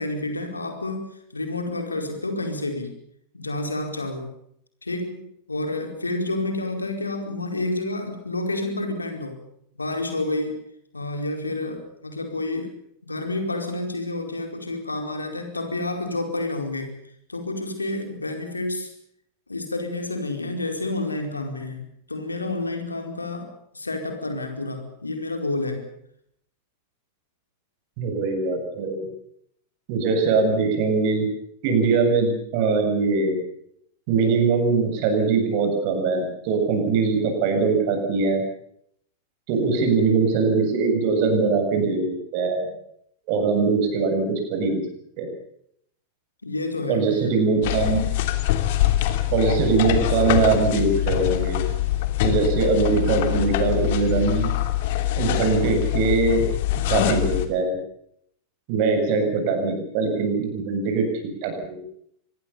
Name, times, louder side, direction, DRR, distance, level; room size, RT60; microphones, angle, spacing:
voice 1, 0.0-2.9 3.3-4.4 4.8-9.5 9.8-10.6 10.9-12.8 13.1-17.0 17.3-18.9 19.5-25.9 39.5-39.9 46.4-47.2, left 2 dB, 80° left, 5 dB, 4.7 m, -29 dB
voice 2, 28.0-29.1 29.9-31.3 31.6-33.4 34.1-38.4 39.5-42.7 43.3-44.8 45.2-45.3 46.9-48.0 49.3-51.6 52.2-54.5 55.2-56.4 56.9-57.8 58.7-61.8, right 4 dB, 45° right, 5 dB, 7.5 m, -22 dB
sound 1, 47.6-57.5, left 14 dB, 50° left, 3.0 m, -24 dB
25.5 x 21.0 x 7.2 m, 0.72 s
figure-of-eight pair, 90°, 0 cm